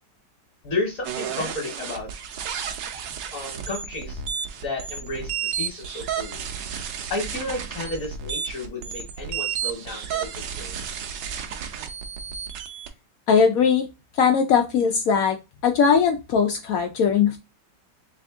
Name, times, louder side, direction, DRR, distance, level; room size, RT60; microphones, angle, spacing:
voice 1, 0.6-2.1 3.3-4.2 4.6-6.4 7.1-10.8, left 2 dB, 50° left, 1 dB, 1.3 m, -32 dB
sound 1, 1.0-12.9, right 7 dB, 75° right, 1.3 m, -32 dB
voice 2, 13.3-13.9 14.2-15.4 15.6-17.4, left 6 dB, 80° left, 4 dB, 0.7 m, -19 dB
3.5 x 3.4 x 3.5 m, 0.26 s
omnidirectional pair, 2.0 m